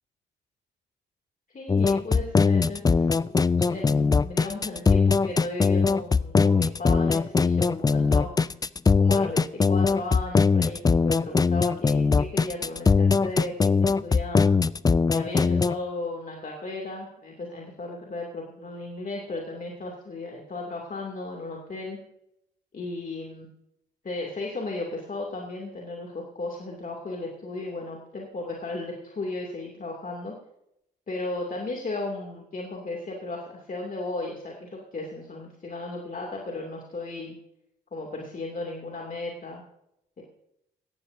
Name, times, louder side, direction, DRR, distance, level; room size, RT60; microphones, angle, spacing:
voice 1, 1.5-8.3 9.0-14.5 15.1-22.0 22.7-23.5 24.0-30.3 31.1-37.3 37.9-39.6 40.2-40.3, left 2 dB, 40° left, 0 dB, 2.6 m, -35 dB
sound 1, 1.7-15.7, left 4 dB, 20° left, 0.4 m, -21 dB
17.5 x 14.0 x 2.7 m, 0.82 s
hypercardioid pair, 45°, 21 cm